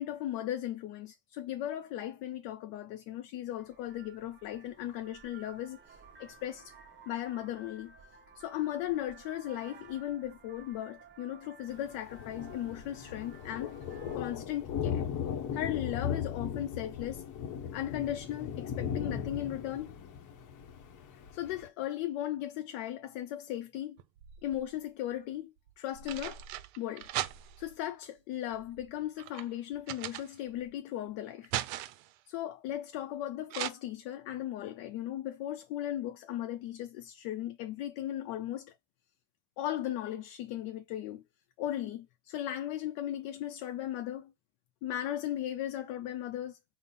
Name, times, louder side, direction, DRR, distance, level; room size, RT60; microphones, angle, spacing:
voice 1, 0.0-6.7 7.1-7.9 8.4-13.8 14.1-15.1 15.5-17.3 17.7-20.0 21.3-24.0 24.4-26.4 26.8-27.1 27.6-31.5 32.3-38.7 39.6-41.2 41.6-44.3 44.8-46.6, left 12 dB, 80° left, 0.6 m, -37 dB
Vehicle horn car horn honking, 3.5-14.2, right 5 dB, 25° right, 0.6 m, -55 dB
Thunder, 11.7-21.7, left 8 dB, 40° left, 0.8 m, -38 dB
sound 1, 24.0-24.8 25.7-27.8 28.5-30.7 31.1-32.2 33.5-33.7, right 14 dB, 80° right, 0.5 m, -39 dB
3.7 x 2.1 x 3.9 m
supercardioid pair, 100°, 47 cm